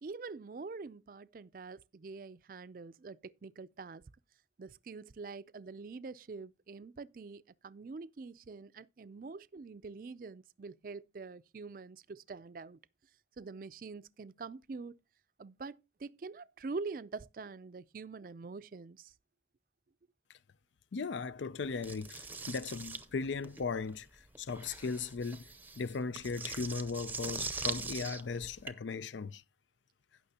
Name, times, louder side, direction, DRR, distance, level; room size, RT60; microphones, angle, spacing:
voice 1, 0.0-4.0 4.6-12.8 13.4-15.0 15.4-19.1, right 4 dB, 50° right, 0.4 m, -45 dB
voice 2, 20.9-25.5 25.8-29.4, left 4 dB, 90° left, 0.5 m, -37 dB
sound 1, 21.8-28.7, right 4 dB, 10° right, 0.6 m, -42 dB
16.5 x 6.0 x 2.8 m
head